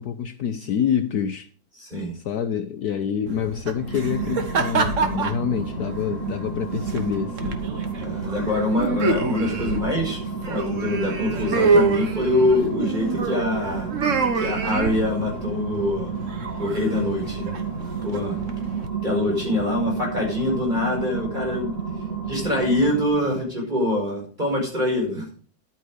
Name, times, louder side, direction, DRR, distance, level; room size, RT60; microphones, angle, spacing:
voice 1, 0.0-1.5 2.1-7.6, left 8 dB, 65° left, 1.2 m, -27 dB
voice 2, 1.8-2.1 8.0-13.9 14.3-16.1 16.6-17.5 18.0-18.4 19.0-21.7 22.2-25.3, left 1 dB, 25° right, 5.7 m, -24 dB
sound 1, 3.3-18.9, right 4 dB, 45° right, 1.6 m, -27 dB
sound 2, 3.7-23.4, right 6 dB, 65° right, 8.2 m, -32 dB
11.0 x 9.1 x 5.0 m
omnidirectional pair, 2.0 m